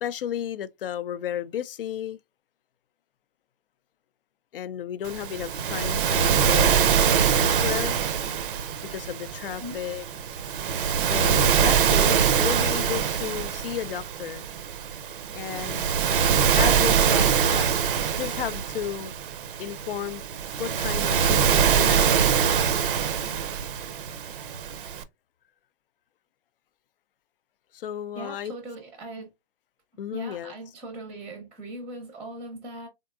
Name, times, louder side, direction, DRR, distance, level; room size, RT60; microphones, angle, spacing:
voice 1, 0.0-2.2 4.5-7.0 7.3-8.0 8.9-10.0 11.0-14.5 15.3-15.9 16.5-17.7 18.2-19.1 19.6-20.2 20.6-22.1 27.7-28.5 30.0-30.5, left 10 dB, 70° left, 0.5 m, -33 dB
Waves surf, 5.1-25.0, right 7 dB, 60° right, 0.6 m, -24 dB
voice 2, 28.1-29.3 30.1-32.9, right 1 dB, 5° right, 0.6 m, -39 dB
3.7 x 3.6 x 2.3 m
hypercardioid pair, 145°, 29 cm